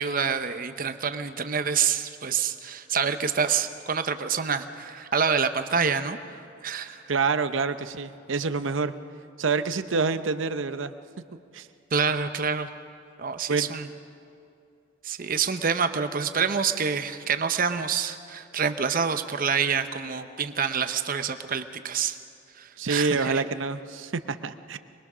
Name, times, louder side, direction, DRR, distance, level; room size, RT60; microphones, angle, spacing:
voice 1, 0.0-6.2 6.6-7.0 11.9-12.7 13.2-13.9 15.0-22.2 22.6-23.4, right 6 dB, 45° right, 9 dB, 0.8 m, -27 dB
voice 2, 7.1-8.9 9.4-10.9 11.5-11.7 13.5-13.7 22.8-24.8, right 4 dB, 75° right, 11 dB, 0.8 m, -27 dB
24.0 x 21.5 x 6.2 m, 2.5 s
head